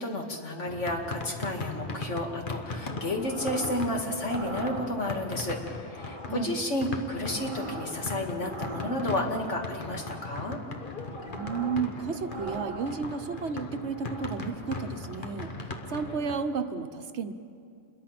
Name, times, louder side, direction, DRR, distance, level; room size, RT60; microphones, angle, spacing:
voice 1, 0.0-10.6, left 1 dB, 75° left, 2 dB, 2.6 m, -31 dB
sound 1, 0.7-16.5, left 3 dB, 45° left, 1.4 m, -39 dB
sound 2, 3.2-3.9 4.2-5.3 5.9-6.5 7.0-9.4 9.9-10.5 10.9-11.9 12.2-13.4 13.9-14.5, right 2 dB, 25° right, 1.2 m, -42 dB
voice 2, 6.3-6.6 11.2-15.5 15.9-17.3, right 5 dB, 65° right, 9 dB, 1.2 m, -32 dB
28.5 x 22.0 x 6.0 m, 2.4 s
omnidirectional pair, 1.2 m